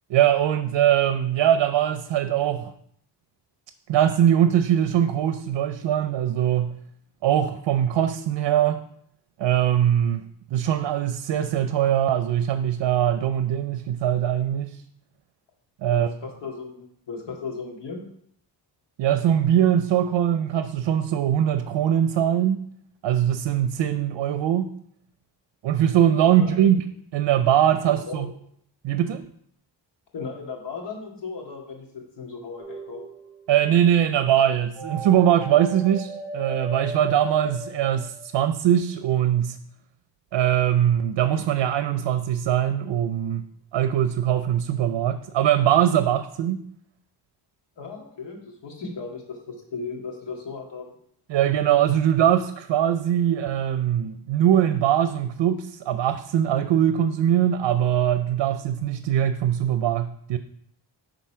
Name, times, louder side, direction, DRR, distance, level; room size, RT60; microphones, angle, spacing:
voice 1, 0.1-2.7 3.9-6.7 7.2-8.8 9.4-10.2 10.5-14.8 15.8-16.1 19.0-22.6 23.0-24.7 25.6-26.8 27.1-28.3 28.8-29.2 33.5-39.6 40.3-43.4 43.7-46.6 51.3-60.4, right 10 dB, 90° right, 10 dB, 0.6 m, -21 dB
voice 2, 15.9-18.0 26.4-26.7 27.9-28.3 30.1-33.0 47.8-50.9, left 4 dB, 75° left, 0 dB, 2.2 m, -36 dB
sound 1, 32.6-33.3 34.8-38.6, right 1 dB, ahead, 2.4 m, -36 dB
9.2 x 4.0 x 5.7 m, 0.67 s
wide cardioid pair, 155°, 43 cm